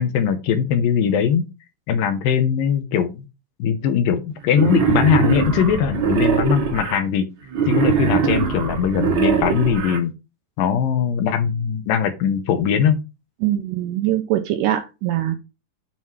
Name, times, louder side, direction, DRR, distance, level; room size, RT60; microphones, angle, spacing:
voice 1, 0.0-1.5 1.9-3.2 3.6-7.3 7.7-10.1 10.6-13.0, left 7 dB, 75° left, 9 dB, 2.3 m, -20 dB
Wild animals, 4.5-7.0 7.5-10.0, right 6 dB, 60° right, 1.3 m, -21 dB
voice 2, 13.4-15.4, right 13 dB, 80° right, 7 dB, 2.0 m, -22 dB
7.3 x 3.2 x 5.5 m, 0.27 s
omnidirectional pair, 4.3 m